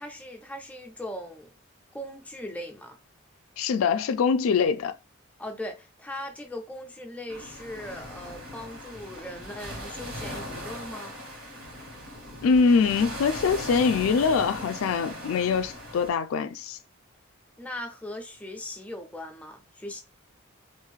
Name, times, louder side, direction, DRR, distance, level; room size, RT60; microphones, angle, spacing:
voice 1, 0.0-1.5 1.9-3.0 5.4-11.2 17.6-20.0, left 1 dB, 5° left, 0.3 m, -39 dB
voice 2, 3.6-4.9 12.4-16.8, left 5 dB, 85° left, 0.3 m, -23 dB
sound 1, 7.3-16.1, equal, 85° right, 1.3 m, -39 dB
2.5 x 2.4 x 3.1 m
head